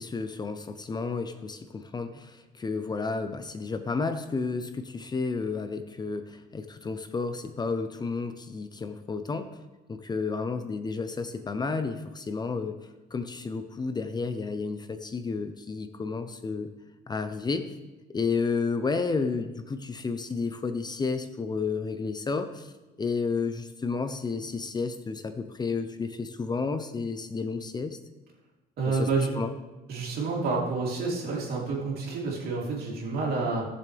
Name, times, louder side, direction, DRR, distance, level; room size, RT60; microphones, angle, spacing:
voice 1, 0.0-9.5 9.9-12.8 13.1-16.7 17.1-17.8 18.1-22.7 23.0-28.0 28.9-29.1 29.3-29.5, left 4 dB, 25° left, 9 dB, 0.7 m, -31 dB
voice 2, 28.8-29.4 29.9-33.7, right 4 dB, 65° right, -3 dB, 3.2 m, -29 dB
17.5 x 7.0 x 3.4 m, 1.1 s
cardioid pair, 110°, 17 cm